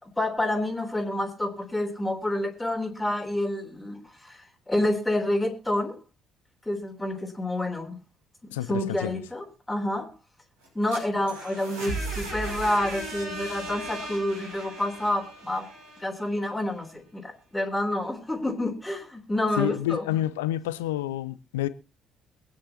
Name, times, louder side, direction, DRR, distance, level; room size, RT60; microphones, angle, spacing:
voice 1, 0.0-6.0 6.7-8.0 8.7-10.1 10.8-15.7 16.0-20.0, left 1 dB, 10° left, 3.5 m, -28 dB
voice 2, 8.5-9.2 19.6-21.7, left 14 dB, 75° left, 0.7 m, -29 dB
sound 1, 10.6-16.5, right 2 dB, 75° right, 6.2 m, -37 dB
23.0 x 9.8 x 2.9 m
figure-of-eight pair, 50°, 0 cm